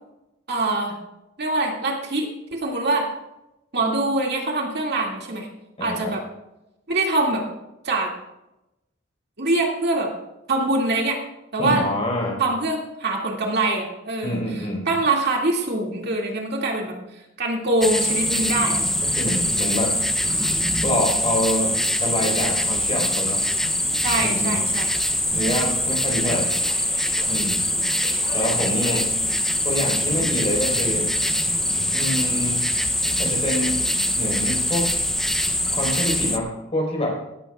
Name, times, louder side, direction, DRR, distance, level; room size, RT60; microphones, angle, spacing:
voice 1, 0.5-1.0 1.4-3.1 3.7-5.5 5.8-6.2 6.9-7.4 7.8-8.1 9.4-10.1 10.5-11.2 11.5-11.9 12.4-18.8 20.2-20.5 24.0-24.9 27.8-27.9, right 2 dB, 55° right, 0 dB, 2.3 m, -24 dB
voice 2, 5.8-6.1 11.6-12.4 14.2-14.8 19.0-20.0 20.8-23.5 24.2-24.6 25.3-26.5 27.3-27.7 28.3-29.1 29.6-31.1 31.9-32.7 33.2-33.8 34.2-34.9 35.7-37.1, left 1 dB, 35° left, -1 dB, 4.5 m, -26 dB
sound 1, 17.8-36.4, left 1 dB, ahead, 0.6 m, -23 dB
Subway metro underground, 21.3-33.7, left 3 dB, 65° left, 4.0 m, -44 dB
18.0 x 15.0 x 2.4 m, 0.93 s
head